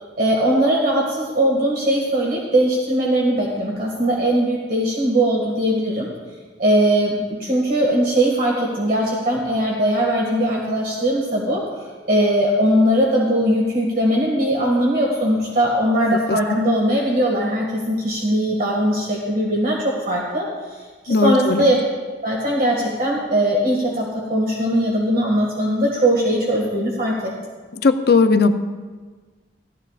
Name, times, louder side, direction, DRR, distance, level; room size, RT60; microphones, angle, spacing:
voice 1, 0.2-6.1 6.6-20.5 21.0-21.9 22.2-27.3, right 1 dB, 55° right, -3 dB, 2.0 m, -20 dB
voice 2, 21.1-21.7 27.8-28.5, left 4 dB, 60° left, 8 dB, 0.6 m, -17 dB
17.5 x 13.0 x 2.5 m, 1.4 s
head